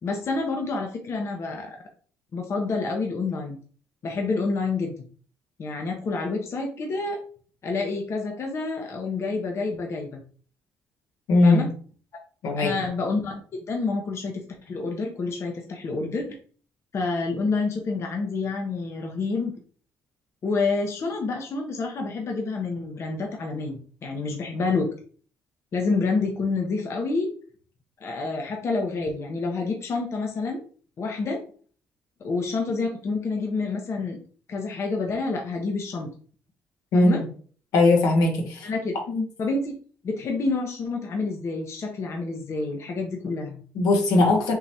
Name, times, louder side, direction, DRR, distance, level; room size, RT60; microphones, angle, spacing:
voice 1, 0.0-1.8 2.3-3.6 4.0-4.9 5.6-7.2 7.6-10.2 11.4-11.7 12.6-16.4 16.9-19.5 20.4-24.9 25.7-27.3 28.0-30.6 31.0-31.4 32.2-34.2 34.5-36.1 36.9-37.2 38.6-38.9 39.4-39.7 40.0-43.6, left 3 dB, 50° left, 2 dB, 0.7 m, -28 dB
voice 2, 11.3-11.7 12.4-12.7 36.9-37.1 37.7-38.7 39.1-39.2 43.7-44.5, left 2 dB, 80° left, 1 dB, 1.0 m, -19 dB
3.8 x 3.0 x 2.7 m, 0.43 s
supercardioid pair, 70°, 6 cm